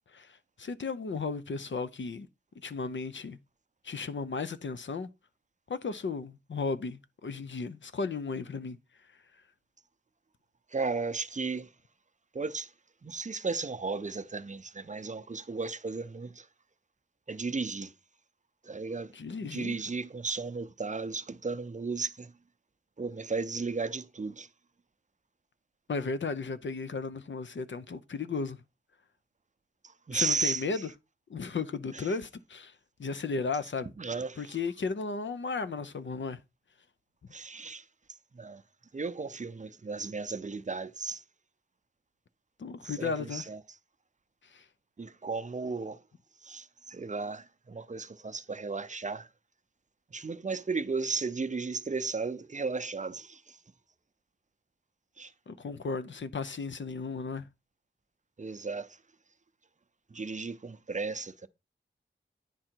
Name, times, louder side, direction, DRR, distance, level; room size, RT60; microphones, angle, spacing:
voice 1, 0.1-2.3 2.6-3.4 3.8-5.1 5.7-8.8 19.1-19.8 25.9-28.6 30.1-30.9 31.3-33.9 34.4-36.4 42.6-43.5 44.4-44.7 55.5-57.5, left 4 dB, 65° left, 0.6 m, -35 dB
voice 2, 10.7-11.7 12.3-12.7 13.0-16.5 17.3-17.9 18.6-19.1 19.5-22.3 23.0-24.5 29.8-30.6 34.0-34.5 37.3-37.8 38.3-38.6 38.9-41.2 42.8-43.6 45.0-46.0 46.4-49.3 50.1-53.6 55.2-55.3 58.4-59.0 60.1-61.5, right 4 dB, 40° right, 0.5 m, -35 dB
9.9 x 3.8 x 4.5 m
wide cardioid pair, 75°, 20 cm